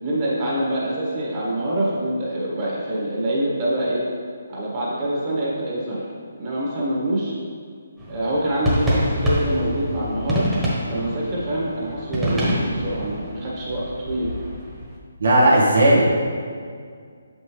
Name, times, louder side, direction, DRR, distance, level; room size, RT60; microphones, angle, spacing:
voice 1, 0.0-4.1 4.5-6.0 6.3-7.3 8.1-10.5 10.8-14.3, right 1 dB, 35° right, -6 dB, 1.6 m, -25 dB
sound 1, 8.0-15.0, equal, 5° right, 1.3 m, -26 dB
voice 2, 15.2-16.1, right 1 dB, 75° right, -5 dB, 1.4 m, -15 dB
6.8 x 5.4 x 3.3 m, 2.1 s
hypercardioid pair, 155°, 0 cm